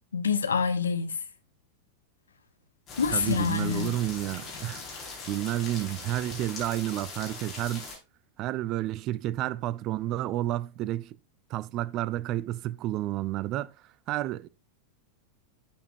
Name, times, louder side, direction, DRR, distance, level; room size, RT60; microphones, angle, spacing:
voice 1, 0.1-1.2 3.0-3.9, left 6 dB, 70° left, 1.1 m, -26 dB
sound 1, 2.9-8.0, left 4 dB, 25° left, 4.7 m, -41 dB
voice 2, 3.1-7.9 8.4-11.2 11.5-13.7 14.1-14.5, right 14 dB, 40° right, 0.5 m, -31 dB
11.5 x 7.4 x 2.5 m
figure-of-eight pair, 90°, 0 cm